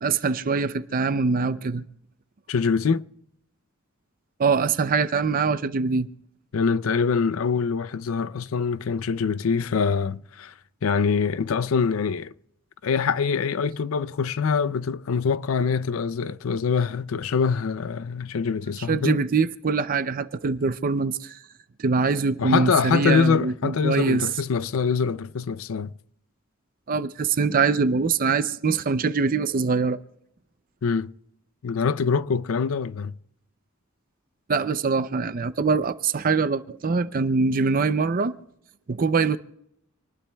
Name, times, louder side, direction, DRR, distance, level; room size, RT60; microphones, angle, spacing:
voice 1, 0.0-1.8 4.4-6.1 18.9-21.4 21.8-24.3 26.9-30.0 34.5-38.4 38.9-39.4, right 4 dB, 45° right, 0.5 m, -23 dB
voice 2, 2.5-3.0 6.5-10.5 10.8-12.3 12.8-19.2 22.4-25.9 30.8-31.1 31.6-33.1, left 5 dB, 75° left, 0.5 m, -24 dB
27.0 x 20.0 x 2.3 m
head